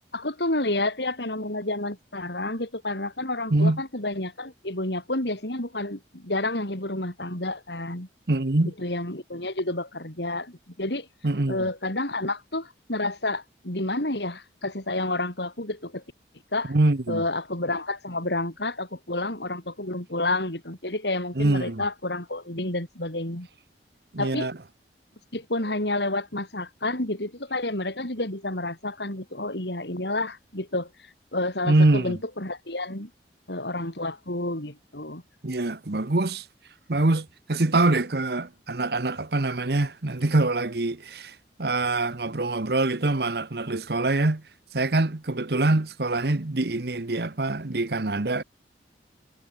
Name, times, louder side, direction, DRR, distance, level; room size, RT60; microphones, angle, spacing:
voice 1, 0.1-8.1 8.8-11.1 11.5-16.0 16.5-16.7 17.1-23.5 24.2-24.5 25.3-33.1 33.5-35.2, left 2 dB, 70° left, 5.5 m, -30 dB
voice 2, 3.5-3.8 8.3-8.7 11.2-11.6 16.7-17.2 21.3-21.8 24.1-24.5 31.6-32.2 35.4-36.5 36.9-44.4 44.7-48.4, right 2 dB, 60° right, 1.1 m, -24 dB
head